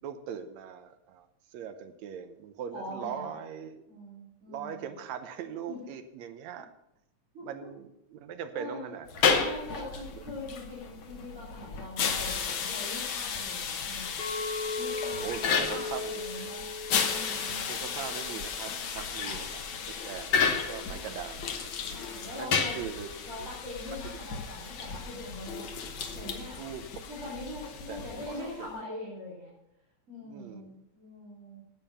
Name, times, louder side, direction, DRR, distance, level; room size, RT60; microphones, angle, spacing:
voice 1, 0.0-1.3 1.5-3.8 4.5-6.7 7.4-9.3 9.7-10.2 15.2-16.1 17.7-19.5 19.9-21.4 22.4-23.5 24.1-24.3 26.6-26.9 27.9-28.7 30.2-30.8, right 8 dB, 75° right, 8 dB, 2.1 m, -40 dB
voice 2, 2.7-3.3 3.9-4.9 5.7-5.8 7.3-7.7 8.5-8.9 9.4-14.2 14.7-16.6 17.0-17.7 19.2-19.4 20.9-21.2 21.9-22.8 23.2-25.7 26.1-26.6 27.1-29.5 30.1-31.6, left 1 dB, 25° right, -8 dB, 3.4 m, -42 dB
sound 1, 9.1-28.7, left 6 dB, 60° left, 1.5 m, -33 dB
Chink clink, 14.2-18.5 18.9-19.3, left 2 dB, 75° left, 2.6 m, -38 dB
11.0 x 9.0 x 5.7 m, 0.84 s
omnidirectional pair, 3.3 m